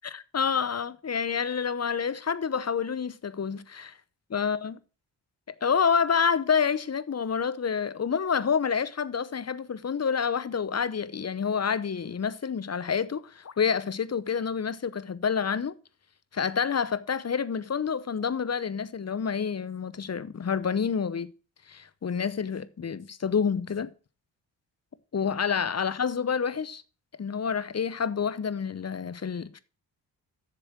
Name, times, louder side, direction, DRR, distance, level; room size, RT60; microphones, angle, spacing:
voice 1, 0.0-3.9 4.3-4.8 5.5-15.7 16.3-21.3 21.7-23.9 25.1-26.8 27.2-29.6, left 6 dB, 35° left, 0.8 m, -28 dB
7.6 x 6.8 x 5.9 m
supercardioid pair, 45°, 46 cm